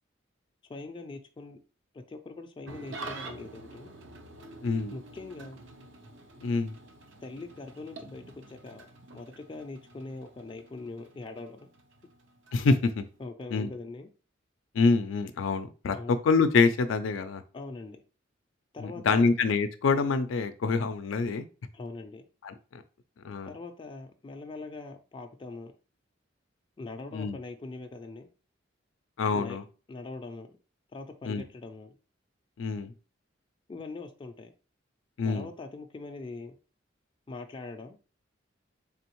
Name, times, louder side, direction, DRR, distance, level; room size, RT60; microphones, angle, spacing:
voice 1, 0.7-1.6 1.9-3.9 4.9-5.6 7.2-8.9 9.1-11.7 13.2-14.1 15.9-16.1 17.5-18.0 18.7-19.3 21.7-22.3 23.5-25.7 26.8-28.3 29.3-29.6 29.9-30.6 30.9-32.0 33.7-34.5 35.2-36.6 37.3-38.0, left 3 dB, 25° left, 0.4 m, -42 dB
Engine starting / Idling, 2.7-13.3, right 3 dB, 75° right, 0.6 m, -47 dB
voice 2, 4.6-4.9 6.4-6.8 12.5-13.0 13.5-13.7 14.7-16.0 16.2-17.4 18.8-21.4 22.4-22.8 23.2-23.5 27.1-27.4 29.2-29.6 31.2-31.4 32.6-32.9 35.2-35.5, left 4 dB, 90° left, 0.4 m, -26 dB
3.8 x 3.4 x 3.0 m
head